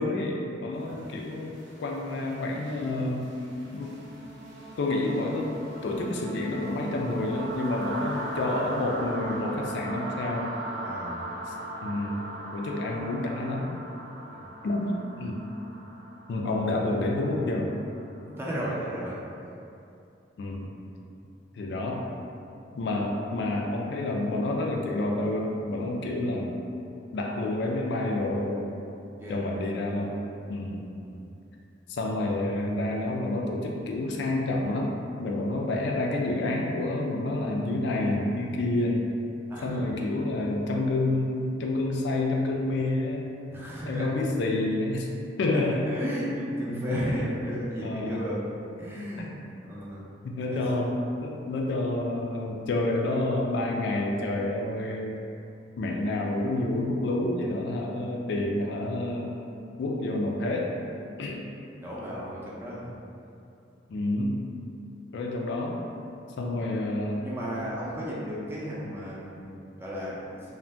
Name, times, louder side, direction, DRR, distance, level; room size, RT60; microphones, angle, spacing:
voice 1, 0.0-3.4 3.7-4.0 4.8-10.5 11.5-11.6 11.8-12.2 12.5-13.7 14.6-15.4 16.3-17.7 20.4-20.7 21.5-22.2 22.7-26.6 27.1-28.6 29.3-30.2 30.5-30.9 31.9-39.0 39.6-43.3 43.9-45.1 45.4-45.9 46.7-47.1 47.8-48.2 50.2-55.2 55.8-59.3 59.8-60.8 61.2-61.5 63.9-64.4 65.1-65.8 66.4-67.3, left 2 dB, 65° left, 0 dB, 0.3 m, -29 dB
sound 1, 0.9-18.7, right 1 dB, 75° right, 0.5 m, -40 dB
voice 2, 10.8-11.2 14.3-14.5 18.2-19.2 29.2-29.5 31.0-31.3 39.5-39.9 43.5-44.1 45.5-48.4 48.8-49.4 49.6-50.0 50.5-50.6 61.8-62.9 66.6-66.7 67.2-69.4 69.8-70.2, equal, 15° right, -7 dB, 0.5 m, -34 dB
2.5 x 2.1 x 3.2 m, 2.6 s
head